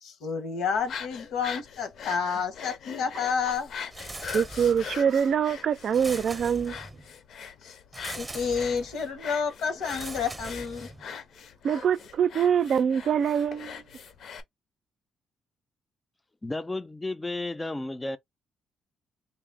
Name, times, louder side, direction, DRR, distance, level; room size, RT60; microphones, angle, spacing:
voice 1, 0.0-3.7 7.6-7.7 8.1-10.9, left 6 dB, 80° left, 1.2 m, -30 dB
sound 1, 0.7-14.4, left 7 dB, 65° left, 0.8 m, -42 dB
sound 2, 3.9-5.0 5.9-7.1 7.9-9.0 9.8-11.1, right 2 dB, 15° right, 0.8 m, -41 dB
voice 2, 4.3-6.8 11.6-13.8, right 7 dB, 60° right, 0.4 m, -24 dB
voice 3, 16.4-18.2, left 2 dB, 15° left, 0.5 m, -32 dB
4.0 x 2.0 x 3.5 m
cardioid pair, 90°, 0 cm